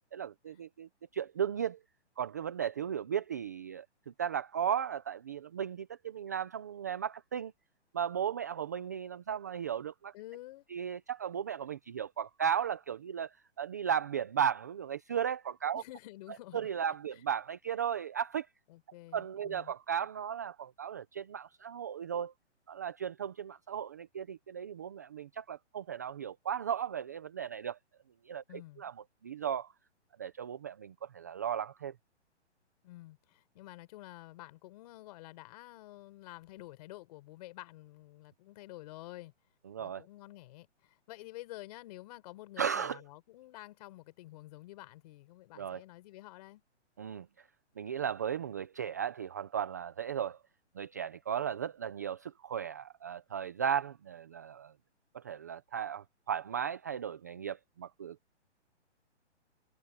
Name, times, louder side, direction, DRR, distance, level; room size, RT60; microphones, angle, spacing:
voice 1, 0.0-1.8 2.2-3.8 4.2-7.5 7.9-10.1 10.7-15.8 16.5-18.5 19.1-22.3 22.7-27.8 28.3-28.4 28.8-28.9 29.2-29.7 30.2-31.9 39.7-40.0 42.6-43.0 45.6-45.8 47.0-47.3 47.8-50.4 50.8-54.7 55.1-58.2, right 8 dB, 15° right, 0.4 m, -35 dB
voice 2, 10.1-10.6 15.7-16.7 17.1-17.2 18.7-19.7 28.5-28.9 32.8-39.3 39.8-46.6, left 17 dB, 35° left, 4.1 m, -50 dB
hypercardioid pair, 155°, 35 cm